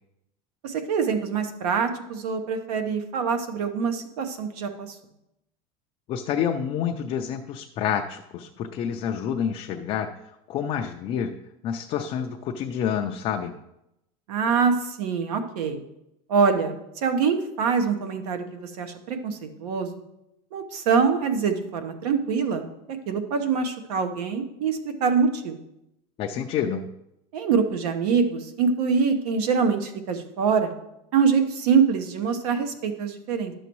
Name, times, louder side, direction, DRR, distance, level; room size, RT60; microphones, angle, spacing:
voice 1, 0.6-5.0 14.3-15.8 16.3-19.9 20.5-22.7 23.1-25.6 27.3-30.7 31.1-33.5, right 5 dB, 80° right, 7 dB, 1.2 m, -24 dB
voice 2, 6.1-10.2 10.5-11.4 11.6-13.5 26.2-26.9, left 8 dB, 25° left, 3 dB, 0.4 m, -28 dB
11.0 x 6.9 x 3.1 m, 0.85 s
supercardioid pair, 170°, 20 cm